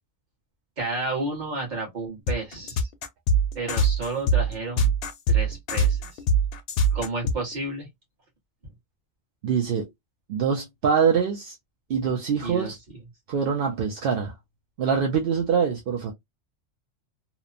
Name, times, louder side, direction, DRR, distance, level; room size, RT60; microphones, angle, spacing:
voice 1, 0.8-2.9 3.5-4.9 5.3-6.2 6.9-7.9 12.4-12.7, right 3 dB, 35° right, 1.2 m, -31 dB
sound 1, 2.3-7.5, right 2 dB, 60° left, 0.7 m, -22 dB
voice 2, 9.4-9.9 10.3-11.6 11.9-12.8 13.3-14.3 14.8-16.1, right 6 dB, 55° right, 0.7 m, -24 dB
2.9 x 2.1 x 2.4 m
omnidirectional pair, 1.3 m